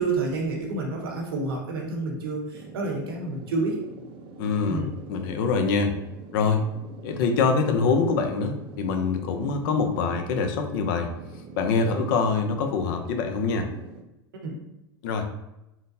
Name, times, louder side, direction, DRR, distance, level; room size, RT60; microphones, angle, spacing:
voice 1, 0.0-3.8 4.7-4.9 14.4-14.6, right 3 dB, 85° right, 1 dB, 0.9 m, -29 dB
sound 1, 2.5-14.0, right 4 dB, 45° right, 0.5 m, -44 dB
voice 2, 4.4-5.9 6.3-6.6 7.0-11.1 11.6-13.7 15.0-15.3, left 4 dB, 65° left, 5 dB, 0.5 m, -24 dB
3.8 x 2.1 x 2.6 m, 0.89 s
hypercardioid pair, 105°, 12 cm